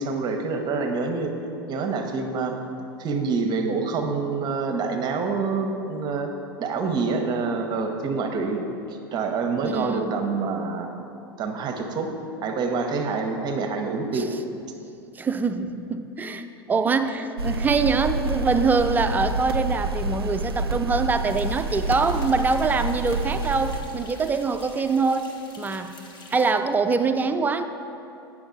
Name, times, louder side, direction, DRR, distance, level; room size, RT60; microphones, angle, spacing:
voice 1, 0.0-1.3 1.7-2.5 3.0-6.3 6.6-8.6 9.1-10.9 11.4-12.1 12.4-14.3, right 4 dB, 35° right, 4 dB, 0.8 m, -26 dB
voice 2, 9.6-10.1 14.1-14.3 15.2-25.9 26.3-27.6, right 4 dB, 15° right, 8 dB, 0.4 m, -24 dB
sound 1, 17.4-23.8, right 2 dB, 80° right, 0.5 m, -28 dB
sound 2, 21.3-26.5, left 3 dB, 35° left, 1.2 m, -48 dB
8.9 x 6.0 x 3.8 m, 2.8 s
figure-of-eight pair, 80°, 13 cm